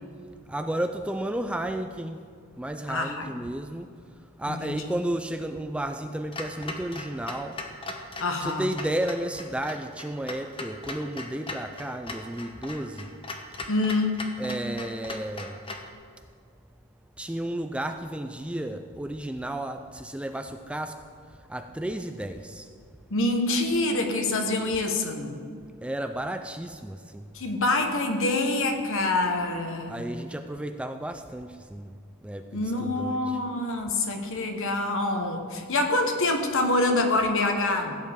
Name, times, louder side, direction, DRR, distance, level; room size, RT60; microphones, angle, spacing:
voice 1, 0.5-2.2 2.6-3.9 4.4-7.6 8.4-13.1 14.4-15.6 17.2-21.0 21.5-22.7 25.8-27.3 29.9-31.9 32.2-33.4, right 1 dB, 5° right, 7 dB, 0.3 m, -32 dB
voice 2, 2.9-3.3 4.4-4.9 8.2-8.7 13.7-14.2 23.1-25.4 27.3-30.0 32.5-37.9, left 2 dB, 60° left, 4 dB, 1.3 m, -26 dB
Clock, 6.3-15.9, left 2 dB, 25° left, 0.9 m, -39 dB
16.0 x 9.5 x 3.6 m, 2.3 s
head